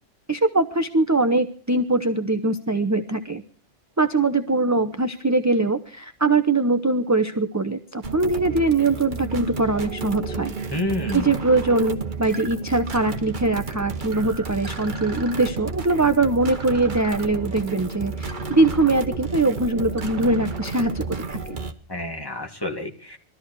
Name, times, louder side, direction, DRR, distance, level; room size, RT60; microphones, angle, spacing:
voice 1, 0.3-3.4 4.0-10.5 11.1-21.6, right 2 dB, 20° right, 9 dB, 0.6 m, -22 dB
sound 1, 8.0-21.7, right 4 dB, 45° right, 1.3 m, -32 dB
voice 2, 10.7-11.3 21.9-23.2, left 1 dB, 20° left, 2 dB, 2.2 m, -29 dB
21.0 x 13.5 x 4.6 m, 0.41 s
omnidirectional pair, 1.2 m